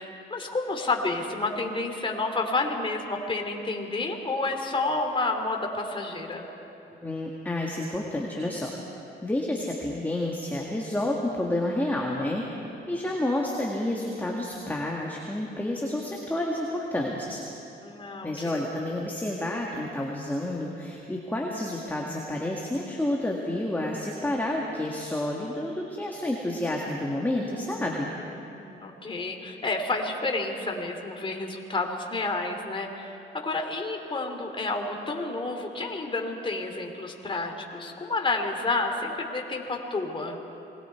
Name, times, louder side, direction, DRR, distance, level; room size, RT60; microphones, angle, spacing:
voice 1, 0.0-6.5 17.8-18.6 28.4-40.4, left 3 dB, 25° left, 2 dB, 2.9 m, -30 dB
voice 2, 7.0-8.7 9.2-12.5 12.9-17.4 18.2-28.1, left 1 dB, 10° left, -2 dB, 2.1 m, -29 dB
27.5 x 21.0 x 4.6 m, 2.9 s
cardioid pair, 90°, 20 cm